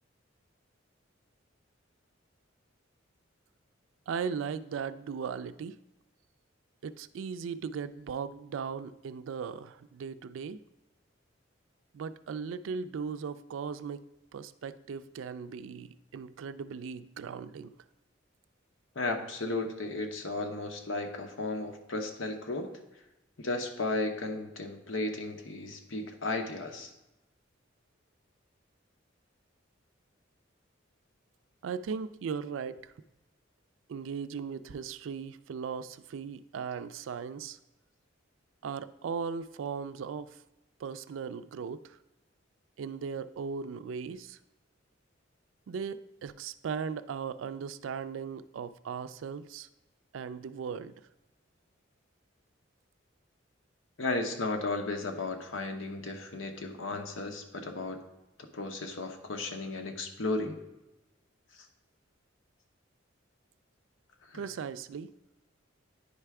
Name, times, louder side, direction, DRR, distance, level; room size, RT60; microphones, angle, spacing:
voice 1, 4.1-5.8 6.8-10.6 11.9-14.0 14.3-17.7 31.6-32.9 33.9-37.6 38.6-40.4 40.8-42.0 42.8-44.4 45.7-49.7 50.1-51.1 64.3-65.1, right 6 dB, 80° right, 13 dB, 0.3 m, -38 dB
voice 2, 18.9-22.7 23.4-26.9 54.0-58.0 58.5-60.6 64.3-64.4, left 2 dB, 85° left, 5 dB, 0.9 m, -34 dB
9.6 x 3.3 x 4.7 m, 0.95 s
head